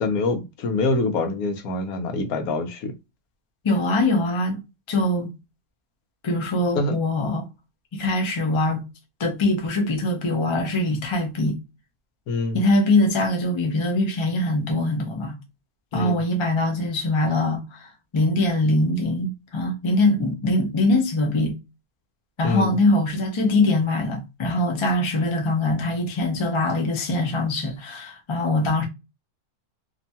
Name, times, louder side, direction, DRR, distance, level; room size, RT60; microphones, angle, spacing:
voice 1, 0.0-2.9 6.8-6.9 12.3-12.6 15.9-16.2 22.4-22.7, left 3 dB, 75° left, 1.1 m, -25 dB
voice 2, 3.6-4.6 4.9-5.3 6.2-7.5 7.9-8.8 9.2-11.6 12.5-15.4 15.9-17.8 18.1-21.6 22.4-28.8, left 2 dB, 50° left, 0.3 m, -22 dB
2.9 x 2.2 x 2.6 m
omnidirectional pair, 1.6 m